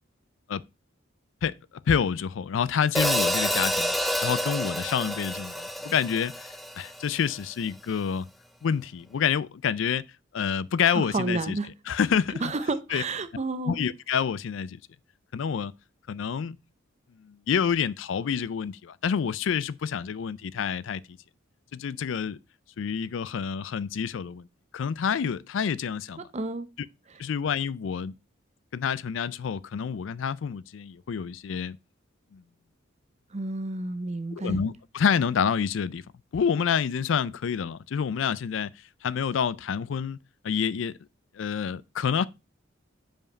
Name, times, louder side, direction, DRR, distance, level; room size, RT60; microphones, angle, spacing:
voice 1, 1.9-3.9 4.2-8.2 8.6-10.0 10.3-11.6 11.9-12.4 12.9-13.0 13.7-14.8 15.3-15.7 16.1-16.6 17.2-21.0 21.7-22.4 22.8-24.5 24.7-26.2 27.2-28.1 28.7-31.8 32.3-32.4 34.3-36.0 36.3-38.7 39.0-40.2 40.4-40.9 41.4-42.3, left 7 dB, 65° left, 0.4 m, -28 dB
Hi-hat, 2.9-7.2, equal, ahead, 0.4 m, -28 dB
voice 2, 10.8-11.7 12.4-13.8 26.3-26.7 33.3-34.6, right 2 dB, 35° right, 0.7 m, -30 dB
5.1 x 5.0 x 5.2 m
head